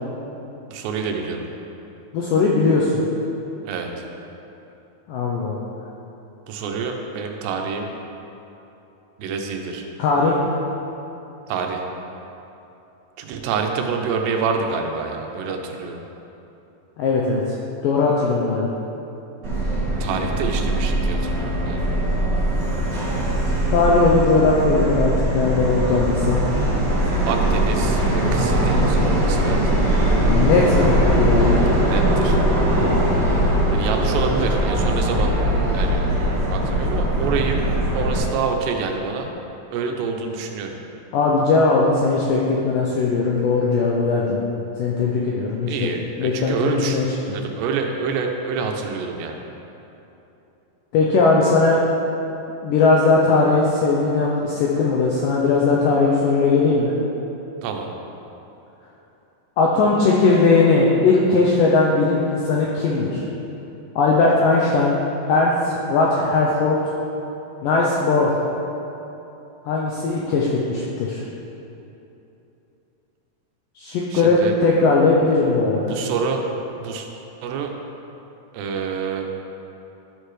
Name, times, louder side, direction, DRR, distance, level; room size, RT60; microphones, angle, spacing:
voice 1, 0.7-1.5 3.6-3.9 6.5-7.9 9.2-9.8 11.5-11.8 13.2-16.0 20.0-22.1 27.3-29.8 31.8-32.4 33.7-35.4 35.7-36.1 36.5-37.6 37.9-39.3 39.7-40.8 45.7-47.0 47.3-49.4 57.6-57.9 74.1-74.6 75.9-76.5 76.8-77.1 77.4-77.7 78.5-79.3, right 5 dB, 90° right, 3 dB, 2.9 m, -27 dB
voice 2, 2.1-3.0 5.1-5.7 10.0-10.4 17.0-17.6 17.8-18.7 23.7-26.4 30.3-31.6 41.1-44.4 44.8-45.9 46.2-47.1 50.9-51.8 52.6-56.9 59.6-63.2 64.0-65.0 65.3-66.8 67.6-68.3 69.7-71.2 73.8-76.0, left 3 dB, 85° left, -3 dB, 1.9 m, -19 dB
Subway metro underground, 19.4-38.2, right 1 dB, 70° right, 1.0 m, -20 dB
12.0 x 6.6 x 3.2 m, 3.0 s
omnidirectional pair, 4.7 m